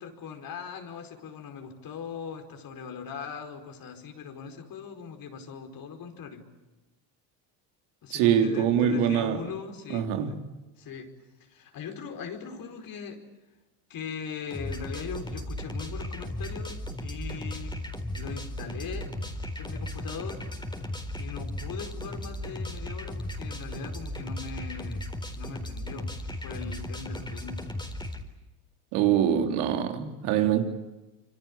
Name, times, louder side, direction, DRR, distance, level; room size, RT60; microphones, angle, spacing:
voice 1, 0.0-6.5 8.0-10.4 10.8-11.1 11.4-13.2 13.9-17.7 18.1-19.1 19.6-20.4 21.2-25.1 25.3-27.6, left 6 dB, 55° left, 4.9 m, -40 dB
voice 2, 8.1-9.4 9.9-10.3 28.9-30.6, right 9 dB, 80° right, 3.4 m, -24 dB
sound 1, 14.5-28.2, left 1 dB, 10° left, 4.0 m, -36 dB
26.5 x 25.5 x 8.8 m
supercardioid pair, 90°, 42 cm